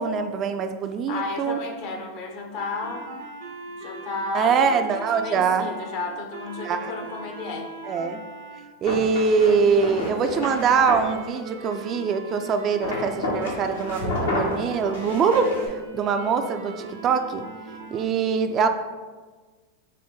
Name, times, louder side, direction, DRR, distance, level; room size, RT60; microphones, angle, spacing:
voice 1, 0.0-1.6 4.3-5.7 6.6-6.9 7.9-8.2 8.8-17.4 17.9-18.7, right 5 dB, 35° right, 7 dB, 0.3 m, -23 dB
voice 2, 1.1-3.1 3.8-4.7 5.2-7.7, left 3 dB, 55° left, 4 dB, 0.7 m, -33 dB
sound 1, 2.6-8.6 9.1-18.1, right 2 dB, 80° right, 0.7 m, -39 dB
sound 2, 8.8-11.1 12.8-15.7, left 2 dB, 80° left, 1.0 m, -30 dB
5.4 x 2.2 x 3.6 m, 1.4 s
hypercardioid pair, 105°, 0 cm